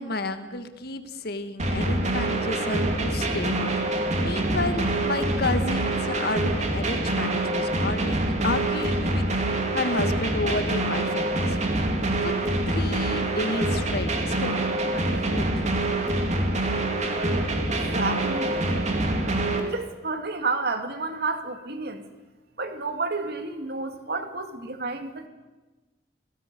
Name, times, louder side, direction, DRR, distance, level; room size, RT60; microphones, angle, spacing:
voice 1, 0.0-11.6 12.2-12.3 12.7-15.7, left 2 dB, 60° left, 9 dB, 1.7 m, -31 dB
sound 1, 1.6-19.6, right 1 dB, 40° right, 2.9 m, -25 dB
voice 2, 17.7-18.7 19.2-19.3 19.6-22.0 22.6-25.3, right 3 dB, 60° right, 7 dB, 2.3 m, -31 dB
29.0 x 17.5 x 6.9 m, 1.2 s
head